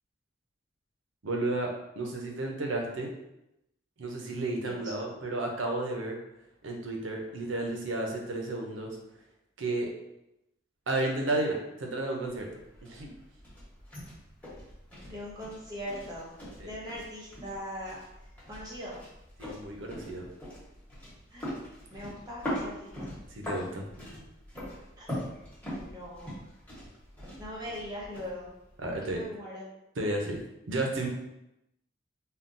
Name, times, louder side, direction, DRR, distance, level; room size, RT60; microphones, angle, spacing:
voice 1, 1.2-3.1 4.0-6.2 6.6-9.0 9.6-9.9 10.9-12.5 12.8-13.1 16.6-16.7 19.4-20.3 23.3-23.8 28.8-29.2 30.0-30.4 30.7-31.1, right 2 dB, 80° right, 1 dB, 0.6 m, -32 dB
sound 1, 12.3-29.3, equal, 10° left, 1.0 m, -42 dB
voice 2, 15.0-16.3 16.6-18.0 18.5-19.0 21.3-21.5 21.9-23.1 25.0-25.1 25.6-26.3 27.3-28.5 28.9-29.7, equal, 20° right, -5 dB, 0.7 m, -40 dB
3.6 x 2.2 x 2.6 m, 0.88 s
head